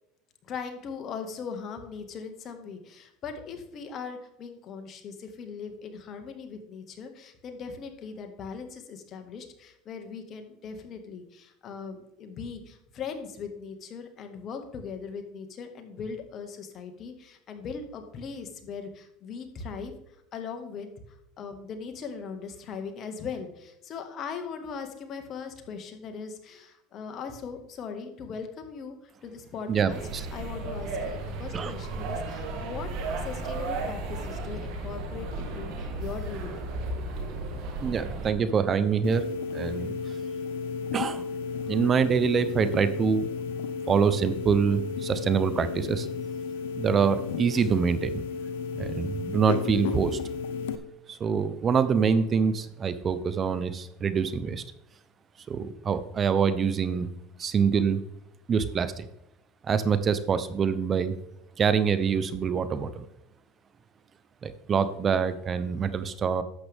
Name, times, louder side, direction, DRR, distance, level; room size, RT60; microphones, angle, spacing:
voice 1, 0.4-19.9 20.3-29.0 29.2-30.0 30.3-32.9 33.1-36.6, left 5 dB, 45° left, 6 dB, 1.8 m, -39 dB
voice 2, 29.7-30.3 31.5-31.7 37.8-40.2 40.9-41.3 41.7-43.3 43.9-46.1 46.8-48.2 48.7-50.2 51.1-54.6 55.5-57.1 57.4-58.0 58.5-59.1 59.6-61.2 61.6-63.0 64.4-66.4, right 6 dB, 35° right, 13 dB, 0.8 m, -25 dB
sound 1, 29.9-38.3, right 2 dB, 60° right, 2.0 m, -34 dB
sound 2, 39.0-50.8, left 6 dB, 80° left, 0.7 m, -33 dB
11.5 x 7.9 x 3.6 m, 0.84 s
hypercardioid pair, 95°, 0 cm